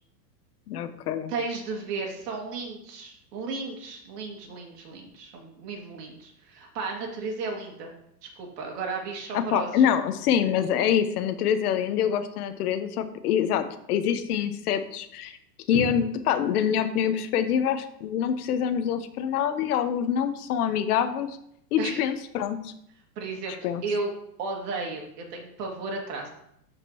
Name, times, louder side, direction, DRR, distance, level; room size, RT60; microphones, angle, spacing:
voice 1, 0.7-1.3 9.3-15.4 15.7-21.4 21.7-22.7 23.6-23.8, left 9 dB, 65° left, 10 dB, 0.9 m, -25 dB
voice 2, 1.3-7.9 8.2-9.8 15.7-15.8 21.8-22.0 23.2-24.1 24.4-26.3, right 3 dB, 70° right, 1 dB, 2.4 m, -34 dB
12.5 x 5.2 x 3.0 m, 0.74 s
supercardioid pair, 155°, 50 cm